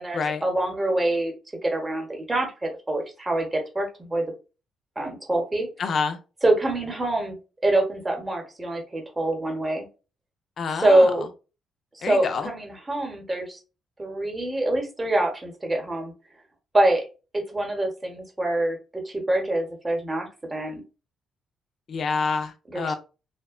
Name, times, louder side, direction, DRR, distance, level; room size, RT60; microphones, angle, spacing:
voice 1, 0.0-1.3 1.6-4.2 5.0-5.7 6.4-9.9 10.8-11.2 11.9-13.6 14.0-16.1 16.7-17.0 17.3-20.8 22.7-23.0, right 1 dB, 20° right, 2 dB, 0.9 m, -25 dB
voice 2, 5.8-6.2 10.6-11.3 12.0-12.5 21.9-22.9, left 5 dB, 55° left, 7 dB, 0.4 m, -27 dB
2.7 x 2.1 x 2.4 m, 0.32 s
cardioid pair, 90°, 0 cm